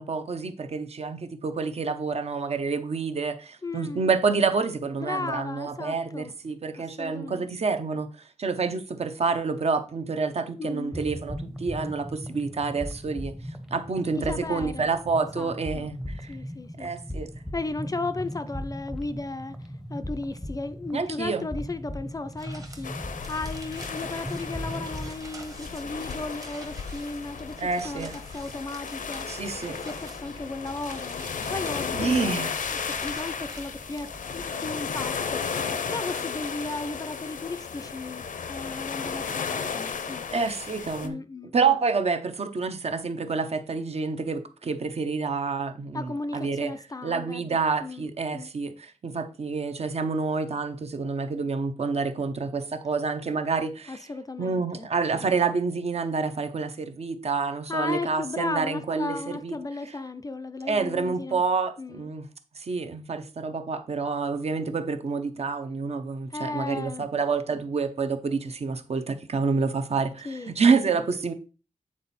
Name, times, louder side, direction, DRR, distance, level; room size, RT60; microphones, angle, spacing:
voice 1, 0.0-8.1 8.4-13.3 13.7-16.4 16.8-17.3 20.9-21.5 27.6-28.2 29.3-29.8 31.9-32.6 40.3-41.2 41.5-46.7 47.0-54.0 54.4-59.2 59.4-59.6 60.7-62.2 62.6-71.3, right 4 dB, 50° right, 0.7 m, -28 dB
voice 2, 3.6-4.1 5.0-6.3 6.8-7.5 10.6-11.0 14.1-14.9 15.4-15.9 16.3-16.9 17.5-19.6 19.9-29.3 29.7-31.2 31.5-35.5 35.9-40.3 41.0-41.8 45.9-48.1 48.3-48.5 53.9-54.9 55.2-55.3 57.7-61.4 61.8-62.1 66.3-67.1 70.2-70.6 70.9-71.0, left 3 dB, 25° left, 0.4 m, -35 dB
sound 1, 10.9-25.2, equal, 5° right, 0.7 m, -38 dB
sound 2, 22.4-34.5, right 1 dB, 25° right, 1.1 m, -46 dB
sound 3, 22.8-41.1, left 6 dB, 75° left, 0.6 m, -34 dB
8.6 x 4.2 x 4.1 m
wide cardioid pair, 175°, 13 cm